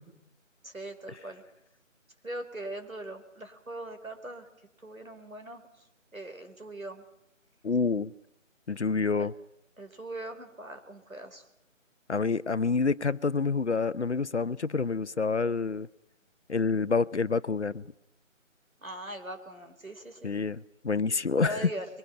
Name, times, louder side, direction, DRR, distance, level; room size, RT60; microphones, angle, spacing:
voice 1, 0.6-1.4 2.2-4.5 4.8-5.6 6.1-7.0 9.2-9.3 9.8-11.4 18.8-20.3 21.4-22.0, right 1 dB, 90° right, 4.4 m, -40 dB
voice 2, 7.6-8.1 8.7-9.3 12.1-15.9 16.5-17.8 20.2-21.7, left 4 dB, 60° left, 0.9 m, -27 dB
26.0 x 23.0 x 5.8 m
figure-of-eight pair, 160°, 40 cm